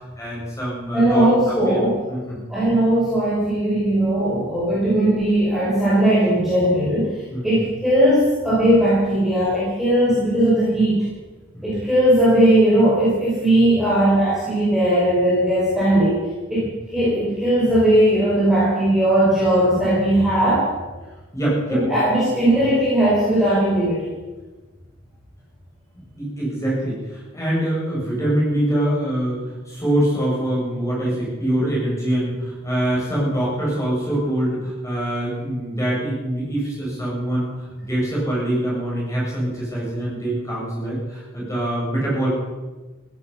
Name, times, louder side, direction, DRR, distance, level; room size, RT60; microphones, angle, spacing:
voice 1, 0.2-1.8 2.1-2.4 3.7-3.8 4.7-4.8 7.3-7.5 11.5-11.7 21.3-21.8 26.2-42.3, right 1 dB, 15° left, -5 dB, 7.2 m, -24 dB
voice 2, 0.9-2.0 2.5-11.0 11.6-20.7 21.8-24.1, right 1 dB, ahead, -9 dB, 5.5 m, -18 dB
16.0 x 16.0 x 5.7 m, 1.2 s
head